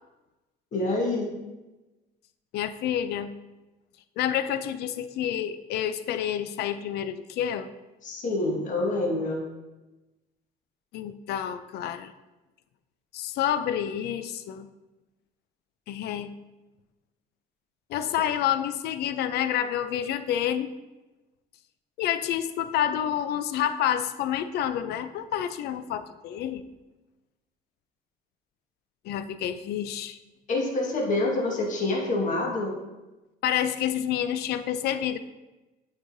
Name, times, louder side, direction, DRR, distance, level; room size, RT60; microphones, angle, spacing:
voice 1, 0.7-1.3 8.0-9.4 30.5-32.7, left 2 dB, 50° left, -1 dB, 1.6 m, -26 dB
voice 2, 2.5-3.3 4.2-7.7 10.9-12.1 13.1-14.7 15.9-16.3 17.9-20.7 22.0-26.6 29.0-30.2 33.4-35.2, left 10 dB, 75° left, 12 dB, 0.5 m, -28 dB
8.3 x 4.8 x 2.7 m, 1.1 s
cardioid pair, 110°, 17 cm